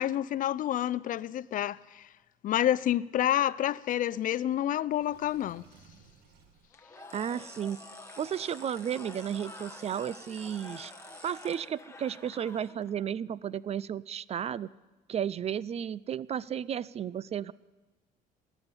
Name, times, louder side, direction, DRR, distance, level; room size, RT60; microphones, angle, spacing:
voice 1, 0.0-2.0 2.4-5.6, left 12 dB, 50° left, 0.5 m, -28 dB
Water / Sink (filling or washing), 5.0-6.7, right 6 dB, 75° right, 1.7 m, -58 dB
Cheering / Crowd, 6.7-13.1, left 3 dB, 15° left, 1.3 m, -49 dB
sound 1, 7.1-11.5, right 1 dB, 15° right, 2.2 m, -53 dB
voice 2, 7.1-7.8 8.2-10.9 11.2-14.7 15.1-17.5, right 9 dB, 40° right, 0.4 m, -33 dB
20.0 x 7.1 x 9.7 m
cardioid pair, 110°, 17 cm